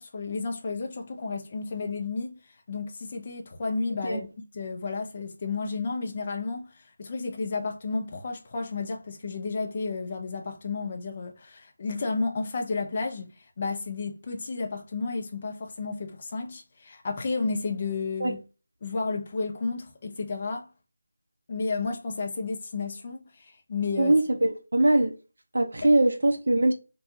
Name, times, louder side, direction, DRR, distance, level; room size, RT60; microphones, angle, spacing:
voice 1, 0.0-2.4 2.7-4.3 4.5-18.4 18.8-20.7 21.5-24.1 25.8-25.9, left 4 dB, 25° left, 0.6 m, -32 dB
voice 2, 24.0-25.1 25.5-26.7, right 1 dB, 70° right, 0.7 m, -22 dB
4.0 x 2.3 x 2.7 m
figure-of-eight pair, 175°, 0 cm